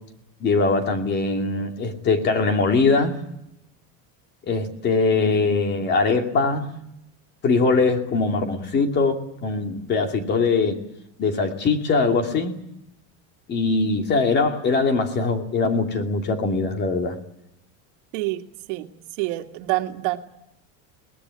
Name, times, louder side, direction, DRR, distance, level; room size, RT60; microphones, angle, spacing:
voice 1, 0.4-3.2 4.5-6.7 7.4-10.8 11.2-12.6 13.5-17.2, left 4 dB, 30° left, 5 dB, 2.5 m, -22 dB
voice 2, 18.1-18.9 19.2-20.2, right 18 dB, 75° right, 6 dB, 2.0 m, -27 dB
22.5 x 19.5 x 9.7 m, 0.80 s
cardioid pair, 175°, 37 cm